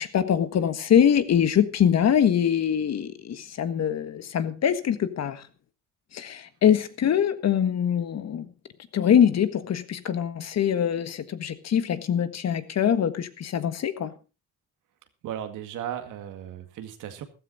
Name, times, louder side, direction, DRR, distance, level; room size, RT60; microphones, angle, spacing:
voice 1, 0.0-5.4 6.1-8.5 8.9-14.1, left 9 dB, 60° left, 12 dB, 1.6 m, -23 dB
voice 2, 15.2-17.2, right 10 dB, 85° right, 8 dB, 2.1 m, -36 dB
14.5 x 13.5 x 4.1 m, 0.32 s
cardioid pair, 90°, 30 cm